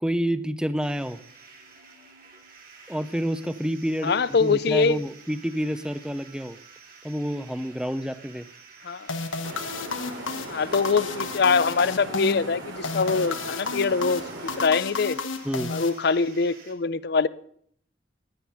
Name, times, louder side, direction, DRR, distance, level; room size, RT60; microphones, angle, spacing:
voice 1, 0.0-1.2 2.9-6.6 7.0-8.5 15.4-15.7, equal, 5° right, 13 dB, 0.6 m, -28 dB
sound 1, 0.8-16.7, right 5 dB, 50° right, 2.4 m, -50 dB
voice 2, 4.0-5.0 8.8-9.1 10.5-15.2 15.7-17.3, left 4 dB, 55° left, 18 dB, 0.5 m, -23 dB
sound 2, 9.1-16.5, left 4 dB, 85° left, 1.0 m, -33 dB
sound 3, 9.4-14.7, right 2 dB, 90° right, 2.9 m, -39 dB
15.5 x 11.0 x 5.7 m, 0.65 s
head